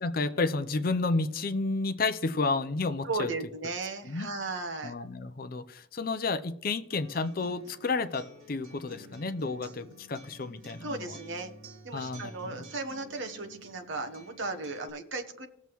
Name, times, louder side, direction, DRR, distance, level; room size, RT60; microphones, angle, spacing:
voice 1, 0.0-3.3 4.0-4.3 4.8-11.1 11.9-12.6, left 3 dB, 45° left, 11 dB, 0.5 m, -31 dB
voice 2, 3.0-4.9 10.8-11.5 11.8-15.5, right 3 dB, 60° right, 6 dB, 1.0 m, -36 dB
Acoustic guitar, 6.9-14.9, right 1 dB, 80° right, 2.3 m, -51 dB
18.5 x 6.9 x 3.0 m, 0.78 s
head